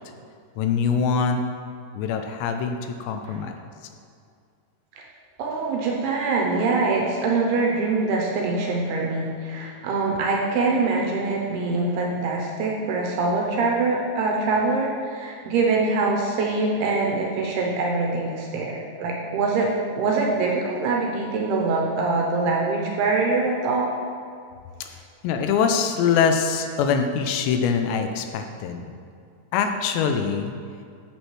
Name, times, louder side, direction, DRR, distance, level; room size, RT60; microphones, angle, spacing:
voice 1, 0.6-1.4 1.9-3.5 24.8-24.9 25.2-28.9 29.5-30.5, left 6 dB, 85° left, 6 dB, 2.6 m, -23 dB
voice 2, 5.4-19.7 20.0-23.9, right 3 dB, 80° right, -1 dB, 2.5 m, -24 dB
12.5 x 6.5 x 3.2 m, 2.3 s
omnidirectional pair, 5.1 m